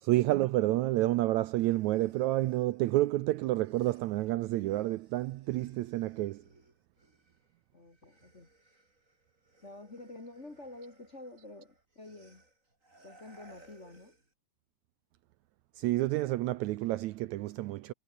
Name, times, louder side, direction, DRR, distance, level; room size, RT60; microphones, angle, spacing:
voice 1, 0.0-6.4 15.8-17.9, right 17 dB, 75° right, 1.8 m, -29 dB
sound 1, 1.3-7.5 7.8-14.3, right 2 dB, 25° right, 6.5 m, -62 dB
voice 2, 7.7-8.5 9.6-12.4 13.0-14.1, left 2 dB, 25° left, 2.2 m, -49 dB
omnidirectional pair, 3.7 m